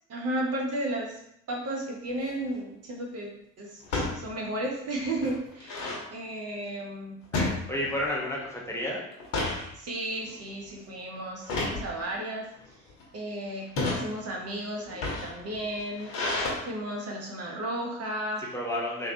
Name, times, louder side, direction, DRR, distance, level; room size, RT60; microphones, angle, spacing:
voice 1, 0.1-1.1 1.5-3.3 3.6-7.2 9.7-12.5 13.1-16.1 16.6-18.5, right 1 dB, 40° right, -1 dB, 1.0 m, -34 dB
sound 1, 2.1-2.4 3.8-4.2 4.6-4.7 5.0-6.0 7.3-8.1 8.5-8.7 9.1-9.7 10.2-10.5 11.4-11.8 12.6-13.0 13.6-14.0 14.8-16.5, left 2 dB, 65° left, 1.3 m, -31 dB
voice 2, 7.3-9.0 18.5-19.1, left 1 dB, 5° left, -5 dB, 1.0 m, -31 dB
3.7 x 2.7 x 2.8 m, 0.77 s
hypercardioid pair, 60°, 40 cm